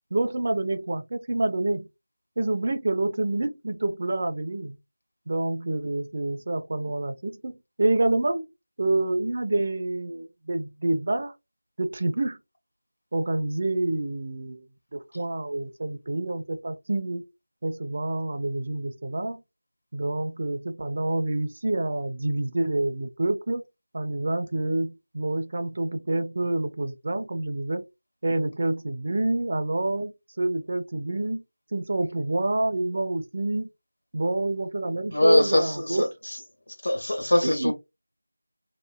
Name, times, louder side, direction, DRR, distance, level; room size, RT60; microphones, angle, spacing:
voice 1, 0.1-1.9 2.4-4.8 5.3-8.5 8.8-11.3 11.8-12.4 13.1-14.7 14.9-17.3 17.6-19.4 19.9-23.6 23.9-27.8 28.2-30.1 30.4-31.4 31.7-33.7 34.1-36.1 37.4-37.7, right 2 dB, 40° right, 0.4 m, -27 dB
voice 2, 35.1-36.4 36.8-37.7, left 1 dB, 60° left, 1.2 m, -23 dB
2.9 x 2.5 x 2.2 m
figure-of-eight pair, 170°, 0 cm